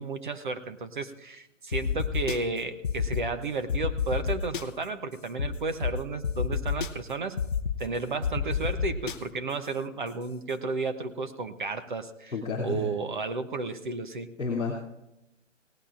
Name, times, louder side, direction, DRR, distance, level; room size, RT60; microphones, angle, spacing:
voice 1, 0.0-7.4 7.8-12.3 12.6-14.3, right 3 dB, 40° right, 10 dB, 0.8 m, -33 dB
sound 1, 1.7-2.4 2.8-3.2 3.7-4.6 5.4-5.5 5.8-5.9 6.2-6.9 7.4-7.8 8.2-9.1, left 7 dB, 40° left, 0.7 m, -28 dB
voice 2, 12.3-12.9 14.4-14.8, left 4 dB, 5° left, -15 dB, 0.6 m, -30 dB
18.0 x 15.5 x 2.5 m, 0.89 s
hypercardioid pair, 170°, 38 cm